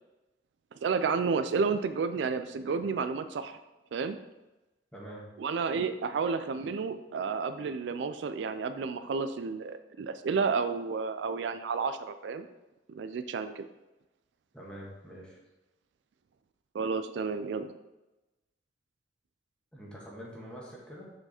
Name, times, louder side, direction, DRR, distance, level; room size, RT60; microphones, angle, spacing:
voice 1, 0.8-3.6 3.9-4.2 5.4-12.5 12.9-13.7 16.7-17.8, right 5 dB, 75° right, 10 dB, 0.3 m, -31 dB
voice 2, 4.9-5.3 14.5-15.4 19.7-21.1, equal, 5° left, -5 dB, 1.6 m, -45 dB
6.5 x 4.7 x 4.3 m, 1.0 s
head